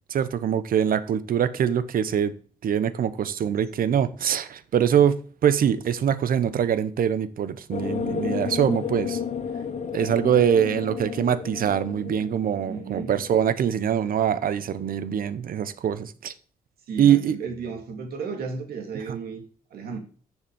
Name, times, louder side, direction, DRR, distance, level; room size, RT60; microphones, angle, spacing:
voice 1, 0.1-2.3 2.6-9.2 9.9-16.3 17.0-17.4 19.1-19.2, right 9 dB, 65° right, 0.9 m, -23 dB
voice 2, 3.8-4.1 12.7-13.1 16.9-19.4 19.7-20.0, right 5 dB, 85° right, 2.1 m, -34 dB
sound 1, 7.7-14.1, left 6 dB, 45° left, 1.2 m, -33 dB
7.4 x 6.8 x 6.9 m
cardioid pair, 65°, 16 cm